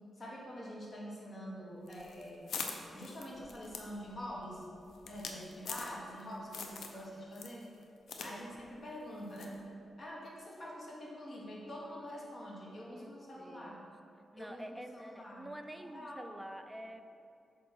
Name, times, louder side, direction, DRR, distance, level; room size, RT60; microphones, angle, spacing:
voice 1, 0.2-2.5 2.9-4.7 5.0-7.7 8.2-9.6 10.0-13.8 14.4-15.5 15.9-16.3, equal, 40° left, -4 dB, 1.9 m, -46 dB
sound 1, 1.9-6.2 6.5-7.0 7.3-8.3 8.6-8.7 9.4-9.6, left 5 dB, 80° left, 0.7 m, -43 dB
voice 2, 12.7-13.9 14.3-17.0, right 1 dB, 5° right, 6 dB, 0.5 m, -48 dB
8.4 x 3.6 x 6.1 m, 2.5 s
cardioid pair, 85°, 0 cm